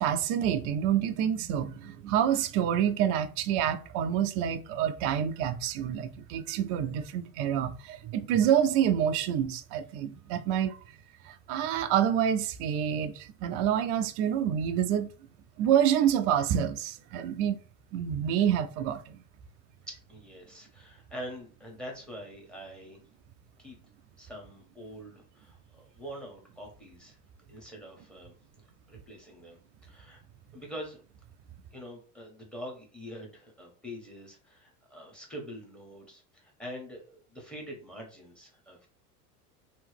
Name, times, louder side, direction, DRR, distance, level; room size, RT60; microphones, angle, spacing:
voice 1, 0.0-10.8 11.3-15.1 15.6-17.6 17.9-19.2, right 9 dB, 35° right, 0.4 m, -27 dB
voice 2, 19.9-23.0 23.6-23.8 24.2-27.2 27.5-28.3 28.9-30.2 30.5-31.0 31.7-38.9, equal, ahead, 1.4 m, -44 dB
3.0 x 2.9 x 3.4 m
hypercardioid pair, 85°, 47 cm